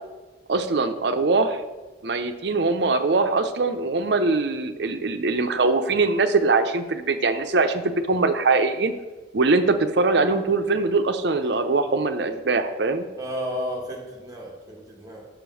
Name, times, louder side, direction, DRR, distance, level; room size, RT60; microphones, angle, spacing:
voice 1, 0.5-1.6 2.0-8.9 9.3-13.1, right 3 dB, 60° right, 8 dB, 0.6 m, -22 dB
voice 2, 13.2-15.2, equal, 20° right, -1 dB, 1.3 m, -32 dB
6.3 x 5.1 x 6.2 m, 1.2 s
head